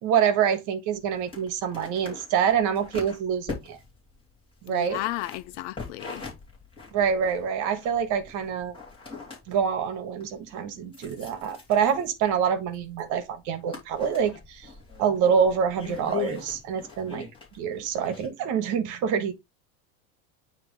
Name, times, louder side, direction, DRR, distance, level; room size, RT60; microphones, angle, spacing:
voice 1, 0.0-3.8 4.6-5.0 6.9-8.7 9.5-14.7 15.0-17.3 17.5-19.3, right 7 dB, 45° right, 1.5 m, -26 dB
sound 1, 0.9-18.3, left 6 dB, 10° left, 2.8 m, -42 dB
voice 2, 4.7-6.3, left 15 dB, 55° left, 0.5 m, -33 dB
9.2 x 3.3 x 3.4 m
cardioid pair, 160°, 41 cm